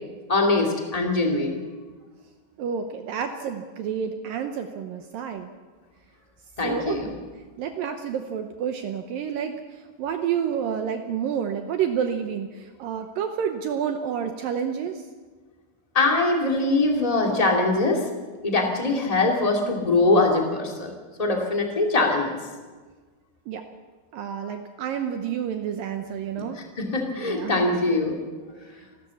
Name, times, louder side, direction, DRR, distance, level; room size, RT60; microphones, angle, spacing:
voice 1, 0.3-1.6 6.6-7.1 15.9-18.0 18.4-20.9 21.2-22.4 26.8-28.2, left 2 dB, 15° left, 2 dB, 1.3 m, -22 dB
voice 2, 2.6-5.5 6.6-7.2 7.6-15.0 23.5-23.6 24.1-26.6 27.2-27.6, right 8 dB, 80° right, 6 dB, 2.1 m, -29 dB
28.5 x 13.0 x 7.1 m, 1.4 s
omnidirectional pair, 5.2 m